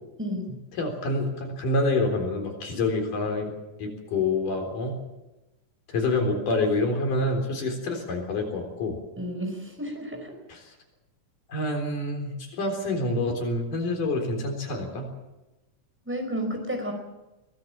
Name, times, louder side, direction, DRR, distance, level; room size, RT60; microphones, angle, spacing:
voice 1, 0.2-0.6 9.2-10.4 16.0-16.9, equal, 5° right, 3 dB, 4.7 m, -31 dB
voice 2, 0.8-3.5 3.8-5.0 5.9-9.0 10.5-10.8 11.5-15.1, left 2 dB, 90° left, 3 dB, 5.5 m, -27 dB
23.0 x 17.5 x 7.5 m, 1.0 s
omnidirectional pair, 3.6 m